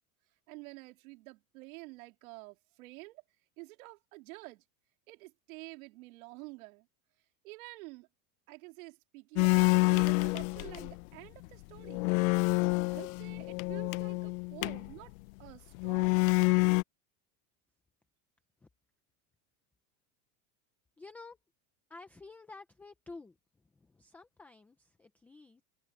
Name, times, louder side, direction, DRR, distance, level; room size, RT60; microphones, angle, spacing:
voice 1, 0.5-3.2 3.6-4.6 5.1-6.9 7.4-8.1 8.5-12.1 12.9-15.1 15.4-16.2, right 23 dB, 65° right, 3.4 m, -49 dB
sound 1, 9.4-11.0 11.4-11.5 11.8-14.9 15.7-16.8, left 27 dB, 70° left, 0.6 m, -28 dB
voice 2, 21.0-21.4 21.9-23.3 23.8-25.6, left 3 dB, 5° left, 0.4 m, -51 dB
supercardioid pair, 175°, 44 cm